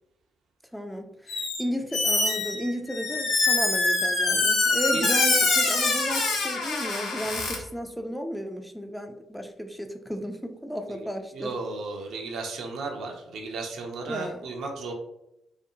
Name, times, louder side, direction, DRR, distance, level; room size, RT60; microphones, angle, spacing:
voice 1, 0.7-11.5 14.1-14.4, equal, ahead, 5 dB, 0.3 m, -34 dB
Squeak, 1.3-1.6 1.9-7.6, left 3 dB, 70° left, 0.6 m, -24 dB
voice 2, 11.3-14.9, right 3 dB, 65° right, 2 dB, 0.4 m, -34 dB
2.5 x 2.2 x 2.6 m, 0.86 s
hypercardioid pair, 40°, 0 cm